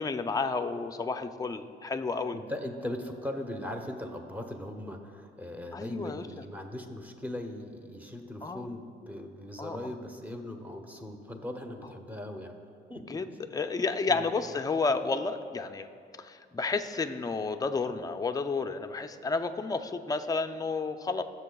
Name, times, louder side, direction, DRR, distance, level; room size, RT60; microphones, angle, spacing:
voice 1, 0.0-2.4 5.7-6.3 8.4-8.7 9.6-9.9 13.1-13.3 13.5-15.9 16.2-21.2, left 4 dB, 20° left, 7 dB, 0.5 m, -31 dB
voice 2, 2.3-12.6 12.9-13.2 14.1-14.2, left 1 dB, 10° right, 3 dB, 1.0 m, -39 dB
17.0 x 6.7 x 2.3 m, 2.4 s
cardioid pair, 90°, 20 cm